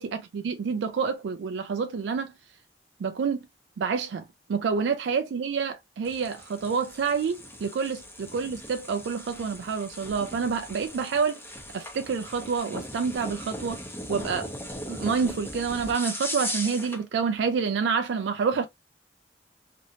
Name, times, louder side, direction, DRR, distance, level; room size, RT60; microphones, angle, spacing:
voice 1, 0.0-2.3 3.0-3.4 3.8-4.2 4.5-13.8 14.1-14.5 14.9-18.7, right 5 dB, 85° right, 0.3 m, -28 dB
sound 1, 6.0-17.0, left 1 dB, 15° left, 0.9 m, -38 dB
3.2 x 2.9 x 2.5 m
head